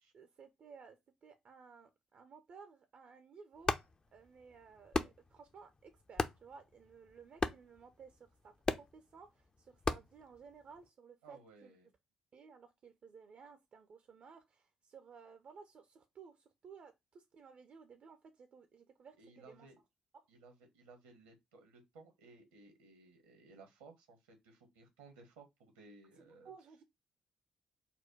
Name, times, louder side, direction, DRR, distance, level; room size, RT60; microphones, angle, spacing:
voice 1, 0.1-3.7 4.1-11.7 12.3-19.7 20.1-20.3 26.2-26.8, right 5 dB, 50° right, 0.6 m, -57 dB
sound 1, 3.5-10.9, left 3 dB, 30° left, 0.6 m, -40 dB
voice 2, 11.2-11.9 19.2-19.8 20.3-26.5, right 3 dB, 75° right, 1.0 m, -59 dB
4.3 x 2.2 x 4.5 m
figure-of-eight pair, 40°, 3 cm